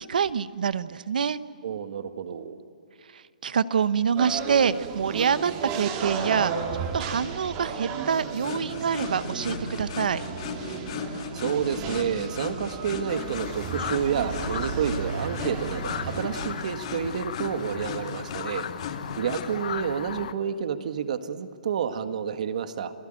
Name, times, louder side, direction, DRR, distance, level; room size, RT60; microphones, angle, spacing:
voice 1, 0.0-1.4 3.1-6.6 6.9-10.2, right 7 dB, 75° right, 16 dB, 0.9 m, -26 dB
voice 2, 1.6-2.6 11.3-18.6 19.2-22.9, right 7 dB, 55° right, 10 dB, 1.7 m, -29 dB
sound 1, 4.2-16.6, right 5 dB, 30° right, 2.9 m, -34 dB
sound 2, 8.4-19.5, left 6 dB, 45° left, 2.9 m, -37 dB
sound 3, 13.1-20.3, left 8 dB, 60° left, 1.1 m, -37 dB
29.0 x 18.0 x 9.0 m, 2.5 s
hypercardioid pair, 160°, 5 cm